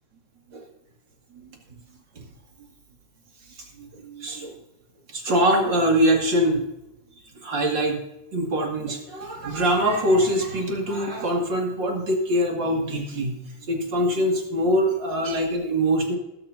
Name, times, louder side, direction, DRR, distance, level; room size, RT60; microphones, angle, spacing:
voice 1, 3.8-4.5 5.1-6.7 7.4-8.0 8.3-13.3 13.7-16.2, equal, 40° right, 1 dB, 2.6 m, -23 dB
20.5 x 8.9 x 2.7 m, 0.89 s
omnidirectional pair, 3.5 m